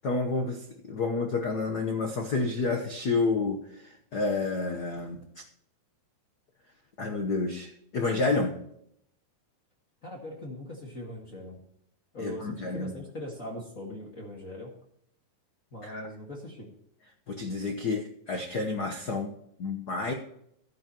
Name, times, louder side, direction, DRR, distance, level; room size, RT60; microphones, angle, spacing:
voice 1, 0.0-3.6 4.1-5.2 7.0-8.6 12.2-12.9 15.8-16.0 17.3-19.3 19.6-20.1, left 3 dB, 70° left, 3 dB, 0.9 m, -29 dB
voice 2, 10.0-11.6 12.1-14.7 15.7-16.7, left 1 dB, 30° left, 0 dB, 1.8 m, -40 dB
15.0 x 10.5 x 3.0 m, 0.73 s
omnidirectional pair, 3.5 m